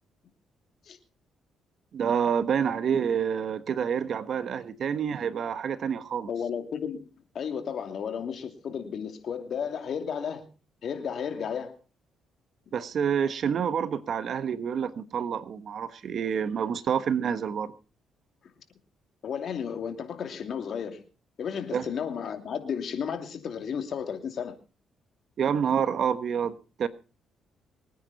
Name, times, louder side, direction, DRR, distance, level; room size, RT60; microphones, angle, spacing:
voice 1, 1.9-6.3 12.7-17.7 21.7-21.9 25.4-26.9, right 7 dB, 60° right, 1.3 m, -28 dB
voice 2, 6.3-7.1 7.3-10.4 10.8-11.7 19.2-21.0 21.4-24.5, left 7 dB, 60° left, 2.6 m, -33 dB
24.0 x 9.6 x 4.2 m
cardioid pair, 90°, 0 cm